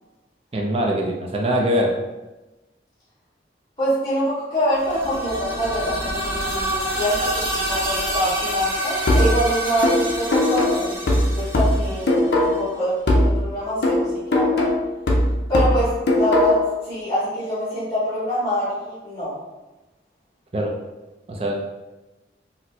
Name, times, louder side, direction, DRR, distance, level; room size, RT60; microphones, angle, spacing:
voice 1, 0.5-2.0 20.5-20.8 21.3-21.6, equal, 30° right, 0 dB, 0.4 m, -22 dB
voice 2, 3.8-14.6 15.5-16.6 16.8-19.4, equal, 25° left, -12 dB, 1.4 m, -25 dB
sound 1, 4.7-12.5, right 1 dB, 15° right, 0.8 m, -28 dB
sound 2, 9.1-12.7 13.1-16.7, left 1 dB, 70° left, 0.5 m, -20 dB
4.1 x 2.0 x 2.7 m, 1.1 s
head